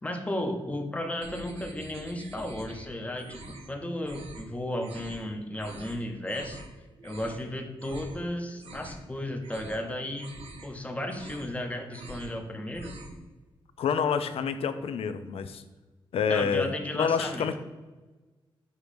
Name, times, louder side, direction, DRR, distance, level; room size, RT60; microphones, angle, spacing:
voice 1, 0.0-3.4 3.7-6.7 7.0-10.3 10.6-13.0 16.3-17.6, left 1 dB, 15° left, 4 dB, 0.8 m, -34 dB
sound 1, 1.2-2.9 3.2-3.7 4.0-4.5 4.8-5.2 5.6-6.0 6.3-6.7 7.0-7.4 7.8-8.2 8.5-9.1 9.4-9.8 10.2-10.7 11.0-11.6 11.9-12.4 12.6-13.2, right 2 dB, 85° right, 1.0 m, -45 dB
voice 2, 13.8-15.6 16.1-17.6, left 6 dB, 85° left, 10 dB, 0.5 m, -28 dB
6.6 x 3.1 x 5.1 m, 1.2 s
wide cardioid pair, 140°, 10 cm